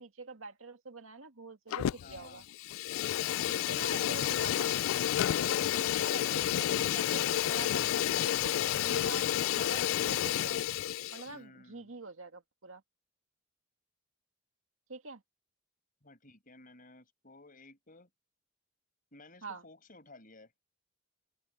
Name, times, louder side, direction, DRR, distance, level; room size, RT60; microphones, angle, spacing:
voice 1, 0.0-2.4 3.7-4.7 5.5-9.3 9.6-10.6 11.1-12.8 14.9-15.2 19.4-19.6, right 4 dB, 85° right, 2.0 m, -46 dB
Fire, 1.7-2.2 2.5-11.3, left 11 dB, 85° left, 0.3 m, -30 dB
voice 2, 2.0-2.5 2.9-3.3 4.0-4.3 11.2-11.9 16.0-18.1 19.1-20.5, left 2 dB, 45° left, 5.7 m, -55 dB
open air
head